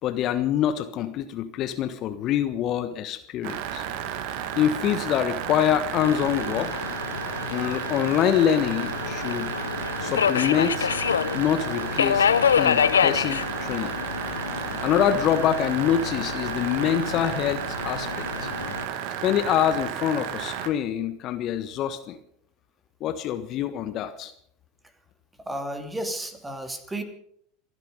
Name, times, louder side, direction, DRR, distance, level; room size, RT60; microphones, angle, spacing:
voice 1, 0.0-3.8 4.5-6.7 7.5-9.5 10.0-10.9 11.3-12.3 12.6-13.9 14.6-18.5 19.2-22.2 23.0-24.3, left 10 dB, 45° left, 10 dB, 1.3 m, -25 dB
sound 1, 3.4-20.7, right 9 dB, 60° right, 1.8 m, -33 dB
Subway metro underground, 6.0-18.8, left 8 dB, 80° left, 0.6 m, -27 dB
voice 2, 25.5-27.0, right 1 dB, 10° right, 7 dB, 2.8 m, -32 dB
27.5 x 9.9 x 5.2 m, 0.66 s
figure-of-eight pair, 80°, 0 cm